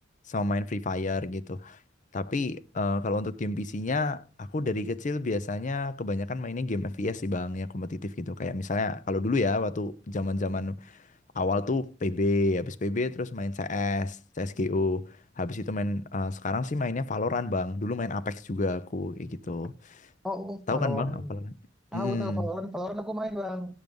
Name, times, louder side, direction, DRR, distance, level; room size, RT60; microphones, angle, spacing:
voice 1, 0.3-1.8 2.1-11.0 11.3-20.0 20.7-21.4 21.9-22.5, left 2 dB, 40° left, 0.6 m, -30 dB
voice 2, 20.2-21.3 21.9-23.8, left 1 dB, 5° right, 0.9 m, -33 dB
10.5 x 6.5 x 5.2 m
head